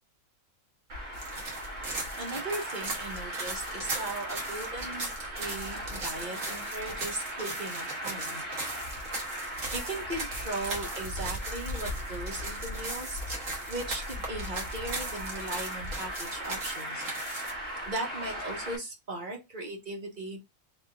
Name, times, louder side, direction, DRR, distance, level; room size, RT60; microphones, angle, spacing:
Traffic noise roadway noise, 0.9-18.8, equal, 70° right, 1.7 m, -38 dB
sound 1, 1.1-17.5, right 2 dB, 85° right, 1.8 m, -39 dB
voice 1, 1.9-8.4 9.7-13.2 13.7-17.5 17.8-20.5, right 2 dB, 40° right, 0 dB, 1.5 m, -38 dB
4.5 x 3.0 x 3.7 m, 0.23 s
omnidirectional pair, 1.3 m